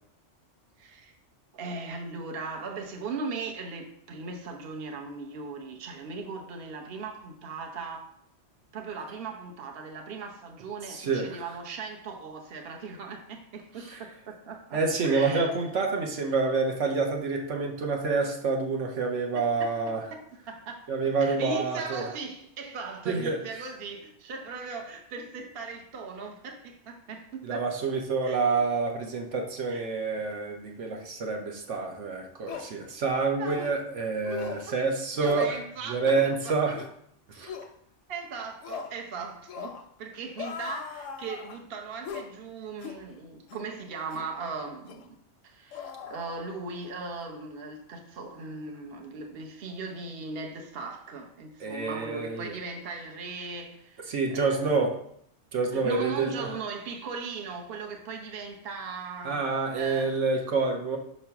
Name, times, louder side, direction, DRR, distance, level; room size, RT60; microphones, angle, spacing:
voice 1, 0.8-1.1 1.5-8.1 8.7-15.5 19.3-19.7 20.1-27.7 28.2-28.4 29.7-29.9 33.4-33.6 34.7-34.8 35.1-36.7 38.1-45.2 45.4-54.8 55.7-60.1, right 4 dB, 55° right, 2 dB, 1.0 m, -38 dB
voice 2, 10.9-11.4 13.9-14.0 14.7-20.0 20.9-22.1 23.1-23.4 27.4-35.5 35.9-36.8 37.3-37.5 51.6-52.5 54.1-55.0 55.5-56.5 59.2-61.0, right 4 dB, 75° right, 2 dB, 1.2 m, -28 dB
sound 1, 31.7-31.8 32.5-32.7 33.5-33.8 34.2-34.7 35.2-35.6 36.0-36.3 36.7-36.9 37.5-37.7 38.6-38.9 39.5-39.9 40.4-41.6 42.0-42.3 42.8-43.0 43.5-43.7 44.1-44.3 44.9-45.1 45.7-46.8 47.1-47.2, left 7 dB, 80° left, 0.9 m, -40 dB
5.7 x 3.1 x 5.7 m, 0.68 s
omnidirectional pair, 1.3 m